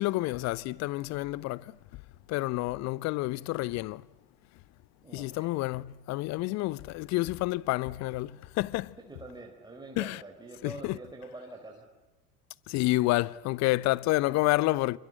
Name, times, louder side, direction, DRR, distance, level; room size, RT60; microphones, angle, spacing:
voice 1, 0.0-1.6 2.3-4.0 5.1-9.0 10.0-10.2 10.6-11.0 12.7-15.0, left 19 dB, 35° left, 0.8 m, -29 dB
voice 2, 5.0-5.8 9.0-11.9, right 2 dB, 10° right, 4.4 m, -46 dB
28.0 x 26.0 x 7.8 m
figure-of-eight pair, 75°, 46 cm